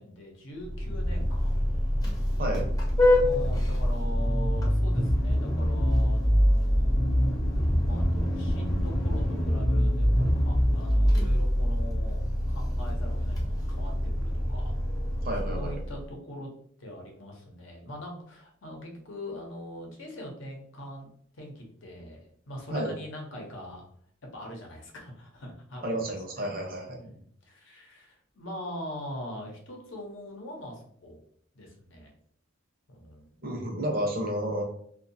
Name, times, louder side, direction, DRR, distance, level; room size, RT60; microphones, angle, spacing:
voice 1, 0.0-1.5 3.1-14.7 15.4-16.5 16.8-23.8 24.3-26.5 26.9-31.2 31.5-32.1 32.9-33.3, equal, 75° left, 1 dB, 0.7 m, -42 dB
Vehicle horn car horn honking, 0.6-16.0, equal, 20° left, 0.6 m, -25 dB
voice 2, 15.2-15.7 22.7-22.9 25.8-27.1 33.4-34.6, right 1 dB, 50° right, 1 dB, 0.7 m, -31 dB
2.6 x 2.3 x 2.6 m, 0.63 s
head